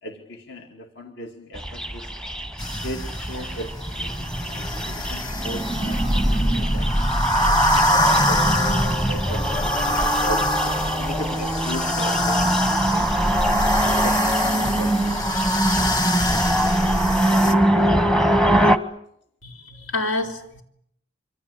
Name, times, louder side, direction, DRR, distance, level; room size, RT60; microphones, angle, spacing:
voice 1, 0.0-2.1 2.8-10.5 11.0-13.2 13.8-15.0, equal, 60° left, 4 dB, 2.5 m, -38 dB
sound 1, 1.6-18.8, right 1 dB, 5° left, 1.0 m, -24 dB
sound 2, 2.6-17.5, equal, 20° left, 1.7 m, -24 dB
Race car auto racing / Accelerating revving vroom, 6.7-12.3, left 3 dB, 40° left, 5.8 m, -35 dB
voice 2, 19.4-20.6, left 2 dB, 80° left, 4 dB, 4.0 m, -28 dB
26.0 x 25.0 x 8.5 m, 0.72 s
head